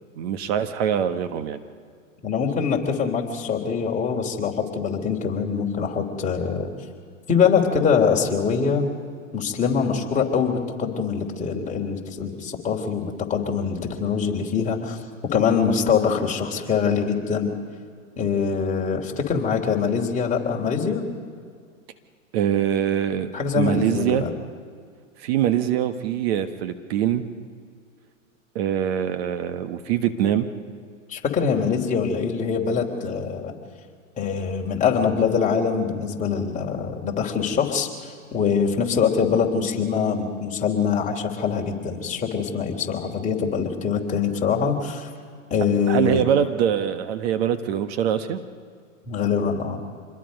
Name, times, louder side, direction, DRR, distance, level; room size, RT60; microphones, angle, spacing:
voice 1, 0.2-1.6 22.3-23.3 23.6-24.2 25.2-27.2 28.5-30.5 45.9-48.4, right 9 dB, 50° right, 9 dB, 1.4 m, -23 dB
voice 2, 2.2-6.7 7.3-8.9 9.3-15.0 15.3-17.5 18.2-21.0 23.3-24.3 31.1-33.5 34.2-45.1 45.5-46.2 49.1-49.8, left 6 dB, 20° left, 0 dB, 3.3 m, -23 dB
26.5 x 21.5 x 5.3 m, 2.1 s
hypercardioid pair, 120°, 40 cm